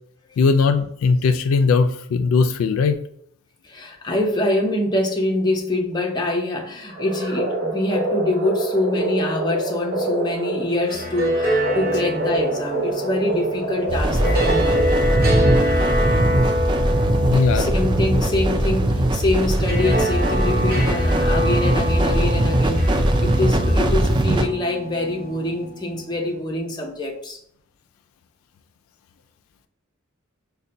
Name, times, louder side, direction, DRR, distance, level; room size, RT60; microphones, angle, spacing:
voice 1, 0.4-3.0 17.3-17.7, left 4 dB, 80° left, 0.3 m, -19 dB
voice 2, 3.6-14.9 17.5-27.4, left 1 dB, 20° left, 0.6 m, -25 dB
sound 1, 6.9-15.3, right 2 dB, 80° right, 0.7 m, -26 dB
sound 2, 10.7-25.9, equal, 45° right, 0.9 m, -26 dB
sound 3, 13.9-24.5, right 1 dB, 20° right, 0.3 m, -20 dB
5.4 x 2.2 x 2.6 m
head